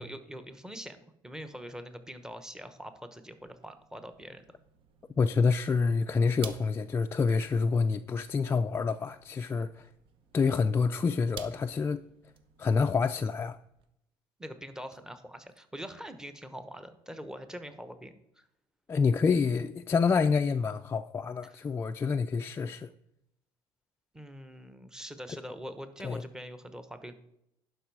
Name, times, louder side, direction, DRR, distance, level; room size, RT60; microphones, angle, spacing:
voice 1, 0.0-4.6 14.4-18.5 21.5-21.6 24.1-27.1, equal, 5° right, 1.0 m, -44 dB
sound 1, 3.5-13.9, right 7 dB, 60° right, 0.9 m, -52 dB
voice 2, 5.2-9.9 10.3-12.0 12.6-13.6 18.9-22.9 26.0-26.2, left 5 dB, 25° left, 0.4 m, -27 dB
11.0 x 5.4 x 4.7 m
cardioid pair, 110°, 10 cm